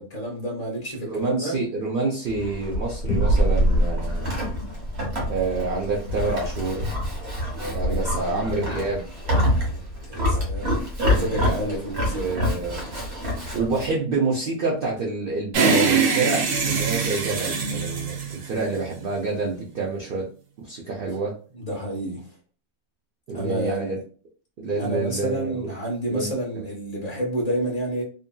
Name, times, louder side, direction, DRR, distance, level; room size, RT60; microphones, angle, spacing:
voice 1, 0.0-1.6 7.5-8.6 9.5-12.4 12.9-13.1 21.5-22.3 23.3-24.0 24.8-28.0, right 1 dB, 40° left, -1 dB, 0.6 m, -30 dB
voice 2, 1.0-4.4 5.3-6.9 7.7-9.1 11.3-11.8 12.1-12.8 13.5-20.3 20.6-21.3 23.3-24.0 24.6-25.7 26.1-26.6, right 3 dB, 70° right, -3 dB, 0.5 m, -27 dB
Livestock farm animals working animals, 2.3-13.9, left 1 dB, 50° right, 1.1 m, -27 dB
sound 1, 3.1-7.9, right 1 dB, 70° left, 0.8 m, -27 dB
sound 2, 15.5-19.0, right 5 dB, 85° right, 1.2 m, -23 dB
2.7 x 2.5 x 2.2 m, 0.41 s
omnidirectional pair, 1.5 m